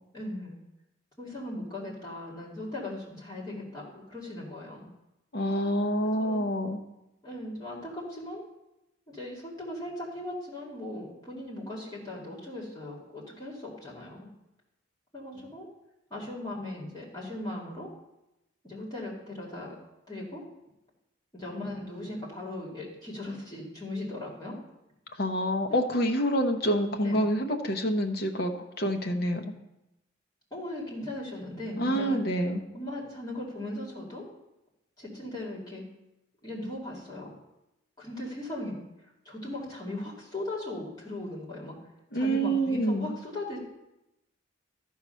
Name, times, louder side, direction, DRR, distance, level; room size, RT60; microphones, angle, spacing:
voice 1, 0.1-0.6 1.2-4.9 6.0-6.4 7.2-8.4 9.1-14.3 15.1-15.7 16.1-17.9 18.6-19.8 20.1-20.4 21.3-24.6 25.7-25.8 27.0-27.2 30.5-32.2 32.7-34.2 35.0-35.9 36.4-37.3 38.0-38.8 39.2-41.8 42.1-43.6, left 1 dB, 20° left, -6 dB, 2.3 m, -38 dB
voice 2, 5.3-6.8 25.2-29.4 31.8-32.6 42.1-43.1, equal, 50° left, 4 dB, 0.9 m, -27 dB
13.0 x 4.8 x 5.6 m, 0.93 s
head